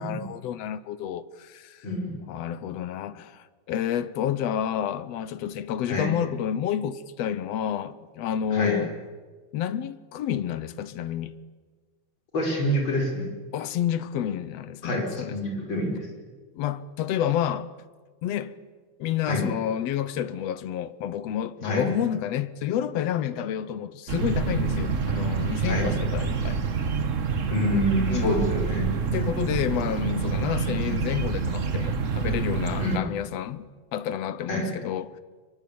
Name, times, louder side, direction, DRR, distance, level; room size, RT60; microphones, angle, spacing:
voice 1, 0.0-1.9 2.3-8.9 9.5-11.3 13.5-15.4 16.5-17.7 18.2-18.6 19.0-26.6 28.1-28.4 29.1-35.2, left 10 dB, 70° left, 1.9 m, -29 dB
voice 2, 1.8-2.1 5.9-6.1 8.5-8.8 12.3-13.3 14.8-16.1 19.3-19.5 21.6-21.9 25.6-25.9 27.5-29.5 32.8-33.1 34.5-34.7, equal, 40° left, 6.0 m, -27 dB
Arboretum Park Bench, 24.1-33.0, right 5 dB, 70° right, 0.7 m, -27 dB
24.5 x 23.0 x 8.6 m
omnidirectional pair, 3.4 m